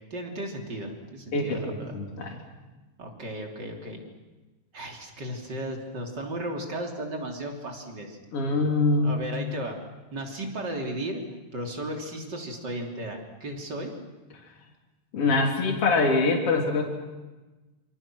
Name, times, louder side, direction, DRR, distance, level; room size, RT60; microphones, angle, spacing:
voice 1, 0.0-2.0 3.0-4.0 4.7-8.2 9.0-9.8 10.1-11.2 11.5-13.9, right 1 dB, 35° right, 2 dB, 3.7 m, -35 dB
voice 2, 1.3-2.4 8.3-9.2 15.1-16.8, left 3 dB, 50° left, 1 dB, 3.9 m, -24 dB
27.5 x 26.0 x 6.3 m, 1.2 s
omnidirectional pair, 3.5 m